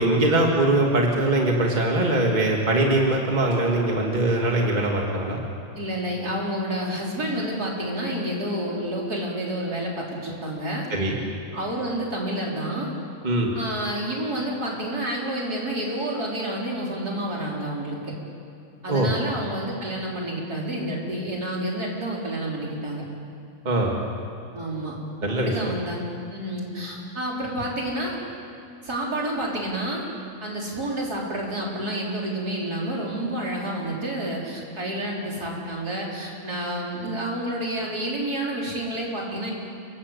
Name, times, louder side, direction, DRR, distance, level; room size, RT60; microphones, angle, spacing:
voice 1, 0.0-5.4 10.9-11.2 13.2-13.5 18.9-19.1 23.6-23.9 25.2-25.5, right 2 dB, 25° right, -1 dB, 2.6 m, -22 dB
voice 2, 5.8-10.9 11.5-12.9 13.5-18.1 18.8-23.0 24.5-25.0 25.4-26.0 26.3-28.2 28.8-30.0 30.4-39.5, right 1 dB, 70° right, -3 dB, 5.4 m, -29 dB
29.5 x 19.5 x 8.5 m, 2.5 s
omnidirectional pair, 1.7 m